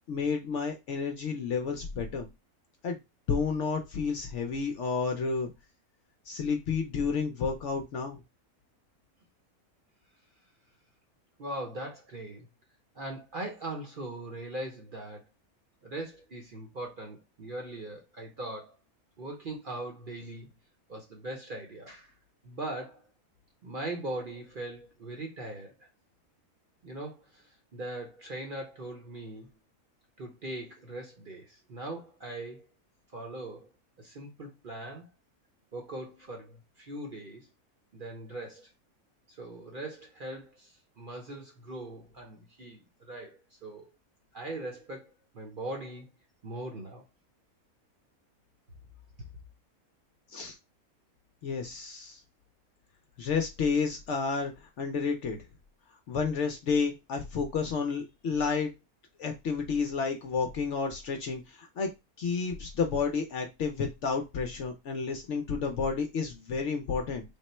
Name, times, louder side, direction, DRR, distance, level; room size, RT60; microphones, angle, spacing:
voice 1, 0.0-2.3 2.8-3.0 3.3-5.5 6.3-8.2 50.3-50.6 51.4-52.2 53.2-55.4 56.1-58.7 59.2-61.9 62.2-67.2, left 5 dB, 65° left, 0.8 m, -31 dB
voice 2, 11.4-12.5 12.9-15.2 15.8-18.7 19.2-20.5 20.9-22.1 22.4-23.0 23.6-25.9 26.8-29.5 30.2-32.7 33.1-33.7 34.0-35.1 35.7-37.5 37.9-38.7 39.3-43.9 44.3-46.1 46.4-47.0, right 1 dB, 45° right, 0.8 m, -40 dB
3.5 x 2.1 x 4.1 m
omnidirectional pair, 1.6 m